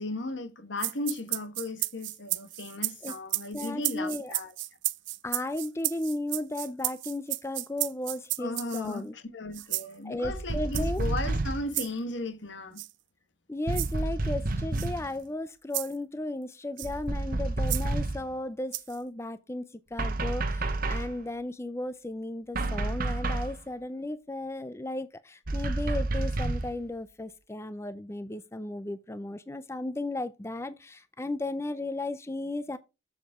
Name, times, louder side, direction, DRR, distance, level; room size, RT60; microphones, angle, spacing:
voice 1, 0.0-4.5 8.4-12.8, left 2 dB, 75° left, 1.4 m, -36 dB
sound 1, 0.8-9.0 9.5-9.9 10.7-11.0 11.7-11.9 12.8-12.9 13.7-13.9 14.7-14.9 15.7-15.9 16.8-16.9 17.7-17.9 18.7-19.0, right 18 dB, 80° right, 0.5 m, -33 dB
voice 2, 3.5-4.3 5.2-9.1 10.0-11.0 13.5-32.8, left 2 dB, 15° left, 0.4 m, -35 dB
sound 2, 10.2-11.7 13.7-15.1 16.8-18.3 20.0-21.2 22.5-23.6 25.5-26.8, right 2 dB, 50° right, 1.0 m, -30 dB
7.3 x 7.3 x 3.5 m
head